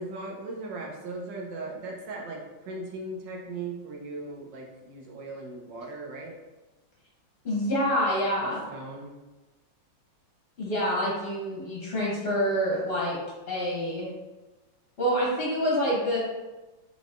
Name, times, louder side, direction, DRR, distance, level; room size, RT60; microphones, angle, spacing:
voice 1, 0.0-6.4 8.4-9.1, right 2 dB, 75° right, -1 dB, 1.5 m, -38 dB
voice 2, 7.4-8.6 10.6-13.2 13.5-14.1 15.0-16.2, equal, 45° left, -5 dB, 0.8 m, -27 dB
4.6 x 3.6 x 2.5 m, 1.1 s
omnidirectional pair, 2.1 m